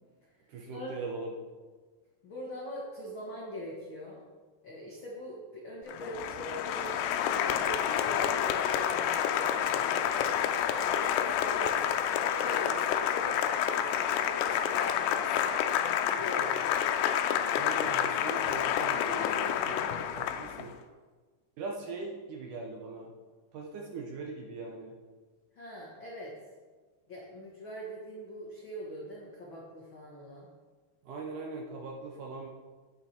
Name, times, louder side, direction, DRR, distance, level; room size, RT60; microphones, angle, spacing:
voice 1, 0.5-1.4 17.6-19.8 20.1-20.7 21.6-23.1 23.5-24.9 31.0-32.5, right 3 dB, 75° right, 0 dB, 1.9 m, -40 dB
voice 2, 2.2-4.2 4.6-10.0 10.7-15.7 16.0-16.7 25.5-26.3 27.1-30.5, equal, 60° left, -5 dB, 1.3 m, -43 dB
Applause, 5.9-20.7, left 9 dB, 90° left, 2.8 m, -29 dB
9.4 x 8.7 x 4.4 m, 1.4 s
omnidirectional pair, 4.8 m